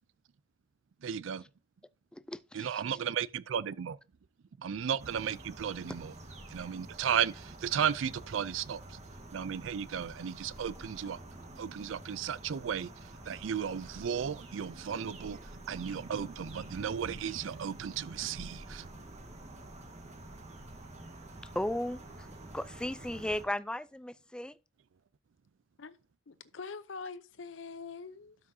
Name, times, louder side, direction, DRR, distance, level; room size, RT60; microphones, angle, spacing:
voice 1, 1.0-1.4 2.5-4.0 4.6-6.1 6.5-9.0 9.3-11.2 11.6-18.9, right 8 dB, 85° right, 0.4 m, -35 dB
voice 2, 2.1-3.0 21.5-22.3 22.5-24.6, left 1 dB, 5° left, 0.3 m, -36 dB
sound 1, 5.0-23.4, right 1 dB, 35° right, 1.5 m, -48 dB
voice 3, 26.3-28.4, left 4 dB, 75° left, 0.6 m, -44 dB
12.0 x 6.1 x 2.7 m
head